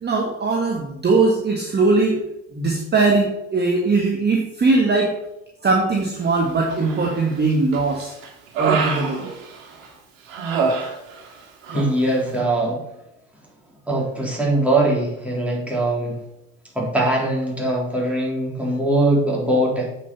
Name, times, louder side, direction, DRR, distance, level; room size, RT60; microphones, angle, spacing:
voice 1, 0.0-2.2 2.5-5.1 5.6-8.1 8.6-9.3, right 3 dB, 25° right, 0 dB, 1.7 m, -20 dB
Human voice, 6.7-7.3 7.7-9.9 10.3-11.4 11.6-11.9, right 5 dB, 75° right, 2.3 m, -26 dB
voice 2, 11.7-12.8 13.9-16.2 16.7-19.9, right 1 dB, 5° right, -4 dB, 3.8 m, -21 dB
8.3 x 5.7 x 5.6 m, 0.88 s
hypercardioid pair, 85°, 39 cm